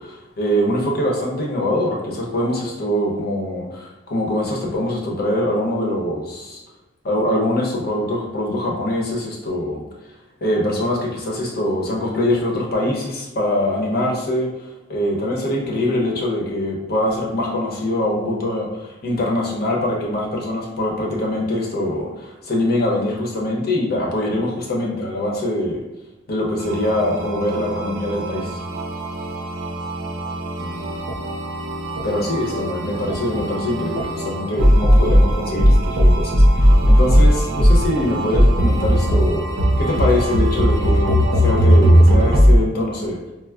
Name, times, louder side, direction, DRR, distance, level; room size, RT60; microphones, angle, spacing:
voice 1, 0.0-6.6 7.0-9.8 10.4-14.5 14.9-25.8 26.3-28.6 32.0-39.4 39.8-43.2, left 1 dB, 55° left, -1 dB, 0.7 m, -23 dB
sound 1, 26.6-42.6, equal, 85° right, 0.5 m, -17 dB
4.3 x 2.0 x 2.3 m, 1.0 s
head